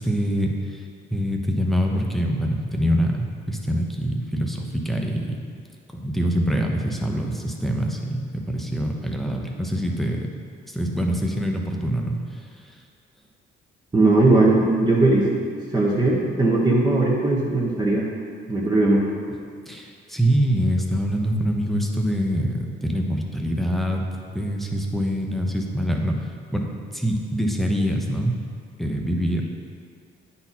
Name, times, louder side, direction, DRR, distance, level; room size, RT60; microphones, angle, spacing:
voice 1, 0.0-5.6 5.9-10.3 10.7-12.8 19.7-24.1 24.3-28.4 28.8-29.5, equal, ahead, 1 dB, 0.9 m, -25 dB
voice 2, 13.9-15.3 15.7-18.1 18.5-19.1, right 2 dB, 20° right, -5 dB, 1.1 m, -19 dB
9.6 x 4.3 x 4.2 m, 2.2 s
cardioid pair, 90°, 20 cm